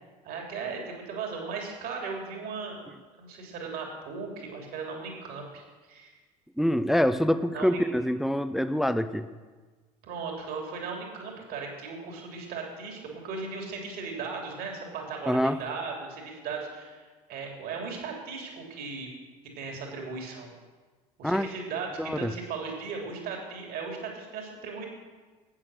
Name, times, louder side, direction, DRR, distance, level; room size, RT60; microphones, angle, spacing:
voice 1, 0.2-2.8 3.2-5.6 5.9-6.1 7.5-7.8 10.0-17.0 17.3-19.1 19.6-20.5 21.2-24.8, right 4 dB, 50° right, 1 dB, 3.0 m, -37 dB
voice 2, 6.6-9.3 15.3-15.6 21.2-21.5 22.0-22.3, equal, ahead, 11 dB, 0.5 m, -25 dB
11.5 x 8.7 x 6.4 m, 1.3 s
figure-of-eight pair, 65°, 20 cm